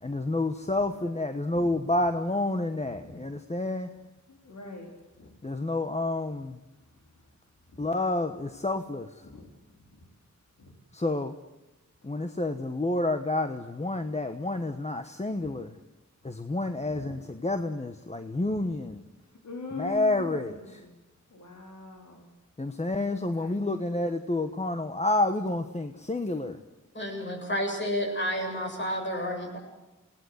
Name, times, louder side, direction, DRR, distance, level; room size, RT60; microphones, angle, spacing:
voice 1, 0.0-3.9 5.4-6.6 7.8-9.3 10.9-11.3 12.0-15.7 16.2-19.0 19.7-20.8 22.6-26.6, left 2 dB, 25° left, 7 dB, 1.2 m, -29 dB
voice 2, 4.3-4.9 5.2-5.3 9.2-9.5 10.6-10.7 15.4-15.6 16.9-17.1 18.5-18.6 19.4-20.9 21.3-22.3 23.4-23.9 27.2-27.4, left 3 dB, 75° left, 0 dB, 4.3 m, -43 dB
voice 3, 26.9-29.6, equal, 40° left, 1 dB, 7.5 m, -30 dB
29.0 x 18.5 x 8.1 m, 1.0 s
wide cardioid pair, 120°, 29 cm